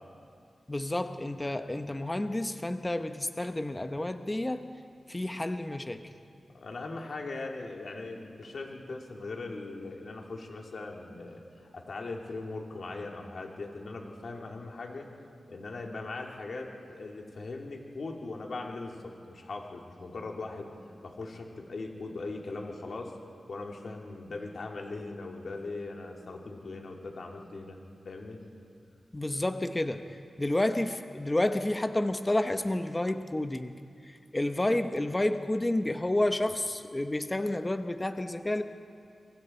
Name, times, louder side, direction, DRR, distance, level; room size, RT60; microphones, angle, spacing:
voice 1, 0.7-4.7 5.1-6.1 29.1-30.0 30.4-33.8 34.3-38.6, left 1 dB, 15° left, 8 dB, 0.9 m, -30 dB
voice 2, 6.5-15.1 15.5-20.7 21.0-23.1 23.5-27.8 28.0-28.4, left 3 dB, 60° left, 0 dB, 2.7 m, -40 dB
26.0 x 23.5 x 4.4 m, 2.5 s
wide cardioid pair, 135°, 0 cm